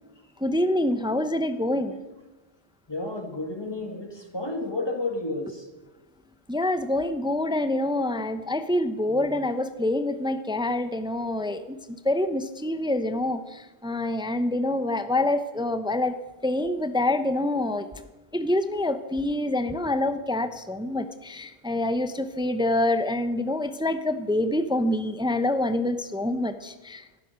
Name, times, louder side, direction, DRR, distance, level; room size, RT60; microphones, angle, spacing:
voice 1, 0.4-2.0 6.5-11.8 12.0-16.1 16.4-17.9 18.3-27.2, left 1 dB, 5° right, 10 dB, 0.6 m, -26 dB
voice 2, 2.9-5.7, left 2 dB, 25° left, 4 dB, 1.6 m, -31 dB
13.0 x 13.0 x 6.3 m, 1.1 s
omnidirectional pair, 1.1 m